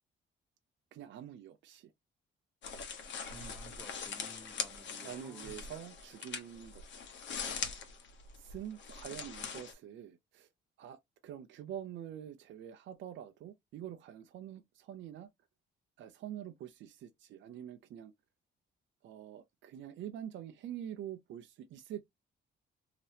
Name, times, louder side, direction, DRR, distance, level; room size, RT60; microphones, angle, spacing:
voice 1, 0.9-1.9 5.0-6.8 8.3-10.5 10.8-15.3 16.0-18.1 19.0-22.0, right 10 dB, 70° right, 0.5 m, -46 dB
sound 1, 2.6-9.7, left 6 dB, 65° left, 1.0 m, -42 dB
voice 2, 3.3-5.6, right 2 dB, 10° right, 1.3 m, -54 dB
3.2 x 2.9 x 2.7 m
cardioid pair, 90°, 20 cm